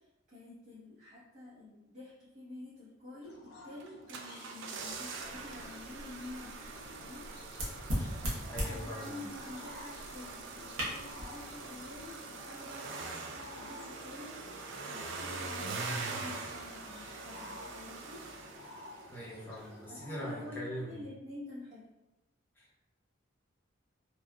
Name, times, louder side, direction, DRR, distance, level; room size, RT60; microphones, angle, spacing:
voice 1, 0.0-7.3 7.9-18.2 19.9-21.8, left 1 dB, 40° right, -12 dB, 0.9 m, -49 dB
sound 1, 3.2-20.5, left 2 dB, 50° left, 0.5 m, -52 dB
sound 2, 3.8-19.3 19.6-19.7, right 4 dB, 60° right, 0.3 m, -43 dB
sound 3, 5.2-12.1, equal, 85° right, 1.0 m, -41 dB
voice 2, 8.5-9.2 19.1-21.0 22.6-22.8, equal, 10° left, -7 dB, 0.7 m, -42 dB
3.2 x 2.4 x 2.3 m, 0.97 s
head